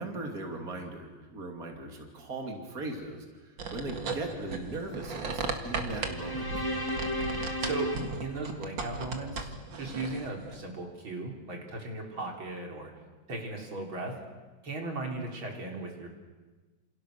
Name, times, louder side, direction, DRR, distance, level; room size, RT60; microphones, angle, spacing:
voice 1, 0.0-6.7, right 2 dB, 45° right, 2 dB, 3.2 m, -39 dB
sound 1, 3.6-10.6, right 4 dB, 70° right, 2.7 m, -36 dB
sound 2, 5.7-9.1, equal, 10° left, 1.9 m, -35 dB
voice 2, 7.6-7.9 8.2-12.9 13.3-14.1 14.6-16.1, right 2 dB, 85° right, 1 dB, 4.6 m, -37 dB
29.0 x 28.0 x 6.7 m, 1.3 s
omnidirectional pair, 2.2 m